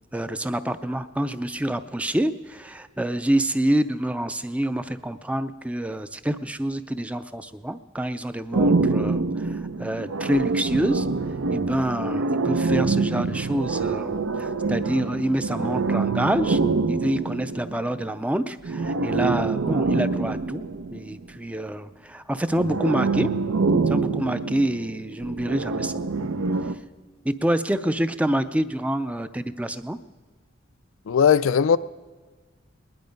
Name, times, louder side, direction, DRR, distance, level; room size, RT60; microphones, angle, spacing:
voice 1, 0.1-11.1 11.5-16.6 16.9-20.7 20.9-23.3 23.9-26.0 26.6-26.8 27.2-30.0, right 1 dB, 5° right, 0.4 m, -27 dB
sound 1, 8.5-18.1 18.6-21.2 22.5-26.7, right 3 dB, 85° right, 0.6 m, -25 dB
voice 2, 31.1-31.8, left 7 dB, 80° left, 0.4 m, -18 dB
20.0 x 10.5 x 5.2 m
head